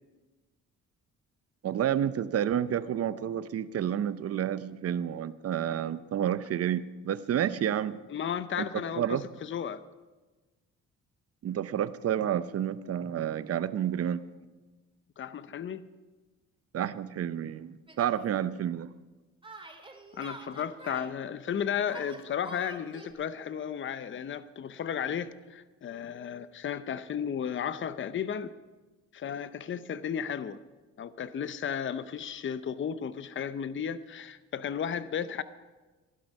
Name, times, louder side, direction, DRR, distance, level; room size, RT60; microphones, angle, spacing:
voice 1, 1.6-8.0 8.6-9.3 11.4-14.2 16.7-18.9, right 10 dB, 50° right, 0.7 m, -30 dB
voice 2, 8.1-9.8 15.2-15.8 20.1-28.5 29.1-30.6 31.0-35.4, left 8 dB, 40° left, 0.7 m, -34 dB
Yell, 17.9-18.2 19.4-21.1 21.8-23.1, right 2 dB, 20° right, 2.0 m, -46 dB
15.5 x 11.5 x 5.4 m
cardioid pair, 90°, 30 cm